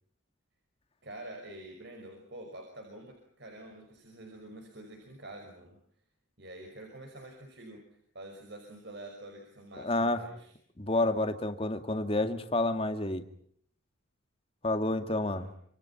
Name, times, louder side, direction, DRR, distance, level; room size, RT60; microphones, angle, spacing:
voice 1, 1.0-5.8 6.4-10.5 11.0-11.5 14.8-15.5, right 1 dB, 55° right, 3 dB, 5.7 m, -47 dB
voice 2, 9.8-10.2 10.8-13.2 14.6-15.5, left 2 dB, 25° left, 7 dB, 2.1 m, -29 dB
28.0 x 27.0 x 5.9 m, 0.64 s
head